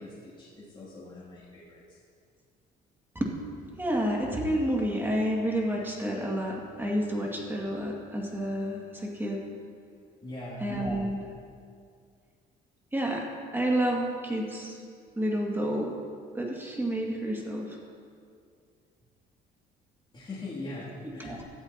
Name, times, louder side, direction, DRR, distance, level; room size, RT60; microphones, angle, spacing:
voice 1, 0.0-1.8 10.2-10.7 20.1-21.4, left 2 dB, 25° left, -9 dB, 2.9 m, -41 dB
voice 2, 3.8-9.4 10.6-11.2 12.9-13.3 13.5-14.8 15.2-15.9 16.3-17.8 20.8-21.4, right 1 dB, 10° right, -2 dB, 2.2 m, -30 dB
17.0 x 13.0 x 3.0 m, 2.2 s
cardioid pair, 110°, 17 cm